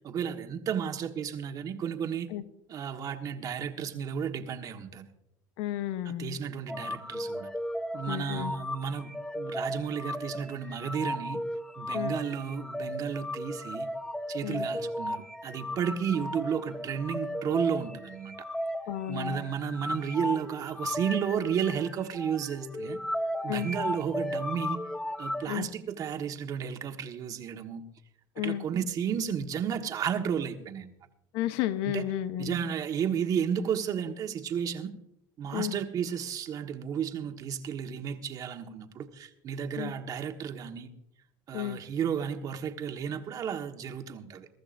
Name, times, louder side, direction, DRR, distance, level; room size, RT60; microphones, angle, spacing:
voice 1, 0.0-2.3 2.7-5.1 6.0-7.5 7.9-11.4 11.8-13.9 14.3-18.3 19.1-23.0 23.4-24.8 25.2-27.8 28.4-30.9 31.9-32.0 32.4-34.9 35.4-40.9 41.5-44.5, right 7 dB, 40° right, 1.4 m, -33 dB
voice 2, 5.6-6.4 8.1-8.5 11.9-12.1 14.4-14.7 18.9-19.4 23.5-23.7 25.5-25.7 28.4-28.6 31.3-32.6 35.5-35.7 39.7-39.9 41.5-41.8, left 13 dB, 70° left, 0.8 m, -32 dB
sound 1, 6.7-25.5, left 1 dB, 5° left, 0.8 m, -35 dB
22.5 x 13.5 x 2.6 m
supercardioid pair, 120°, 9 cm